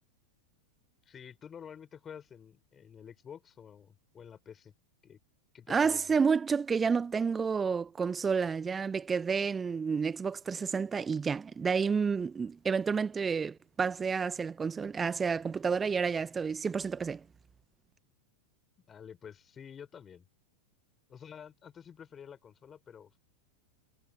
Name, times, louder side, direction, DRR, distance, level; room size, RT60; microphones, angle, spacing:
voice 1, 1.0-4.7 5.0-5.2 5.5-6.1 18.9-20.3 21.1-23.1, left 8 dB, 20° left, 6.6 m, -49 dB
voice 2, 5.7-17.2, right 5 dB, 15° right, 1.3 m, -30 dB
figure-of-eight pair, 90°, 0 cm